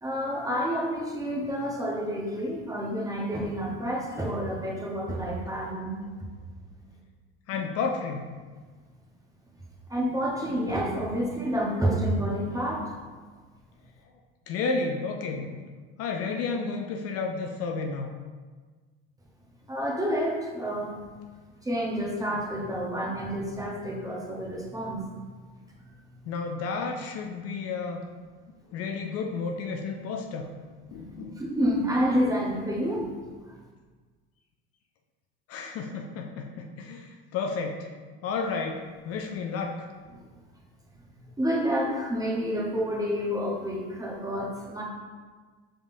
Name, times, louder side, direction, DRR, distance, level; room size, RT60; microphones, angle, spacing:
voice 1, 0.0-6.3 9.9-12.9 19.7-21.0 21.6-25.1 31.0-31.1 31.4-33.5 40.1-40.2 41.0-41.1 41.4-44.8, equal, 10° right, -3 dB, 1.0 m, -29 dB
voice 2, 7.5-8.2 14.5-15.6 16.0-18.1 26.3-28.0 28.7-30.5 30.9-31.4 35.5-37.9 38.2-39.9, left 4 dB, 50° left, 3 dB, 0.5 m, -32 dB
4.9 x 3.6 x 2.7 m, 1.4 s
hypercardioid pair, 80°, 31 cm